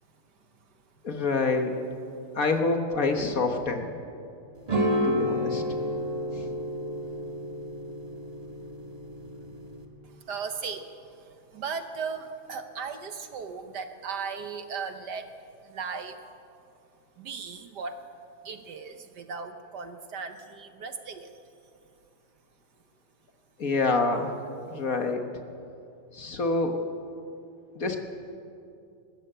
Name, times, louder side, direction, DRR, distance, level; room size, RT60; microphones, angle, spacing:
voice 1, 1.0-1.7 2.4-3.9 5.0-5.6 6.3-6.5 23.6-24.3 24.7-25.2 26.1-26.8 27.8-28.0, left 3 dB, 45° left, 5 dB, 1.6 m, -26 dB
sound 1, 4.7-9.9, equal, 20° right, 1.7 m, -30 dB
voice 2, 10.0-15.3 15.6-16.2 17.2-18.1 18.4-21.4, right 5 dB, 60° right, 8 dB, 1.4 m, -37 dB
21.5 x 13.5 x 8.9 m, 2.6 s
omnidirectional pair, 2.2 m